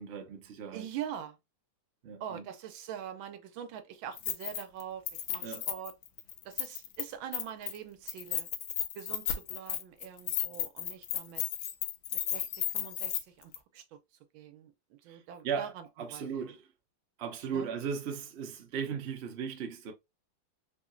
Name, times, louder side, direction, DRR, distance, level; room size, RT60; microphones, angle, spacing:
voice 1, 0.0-0.9 2.0-2.5 5.3-5.6 15.1-15.7 16.0-16.7 17.2-19.9, right 6 dB, 60° right, 0.6 m, -37 dB
voice 2, 0.7-1.4 2.2-5.9 6.4-8.5 8.9-11.4 12.1-14.0 14.3-15.8 16.1-16.5 17.5-17.7, right 9 dB, 80° right, 1.4 m, -43 dB
Keys jangling, 4.2-4.8 5.1-7.0 7.3-7.8 8.1-13.2 13.5-13.6, left 11 dB, 85° left, 1.4 m, -34 dB
3.7 x 2.8 x 2.5 m
omnidirectional pair, 2.2 m